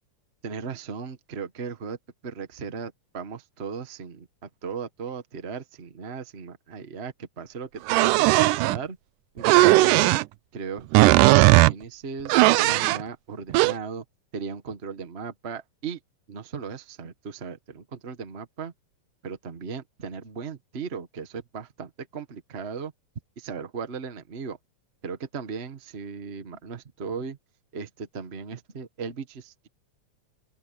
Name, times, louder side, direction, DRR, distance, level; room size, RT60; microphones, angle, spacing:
voice 1, 0.4-2.0 2.2-9.0 9.3-10.1 10.5-14.0 14.3-16.0 16.3-18.7 19.2-22.9 23.4-24.6 25.0-27.4 27.7-29.7, right 5 dB, 55° right, 0.6 m, -37 dB
sound 1, 7.9-8.8 9.4-10.2 10.9-11.7 12.3-13.0 13.5-13.7, right 19 dB, 90° right, 2.1 m, -17 dB
open air
omnidirectional pair, 3.7 m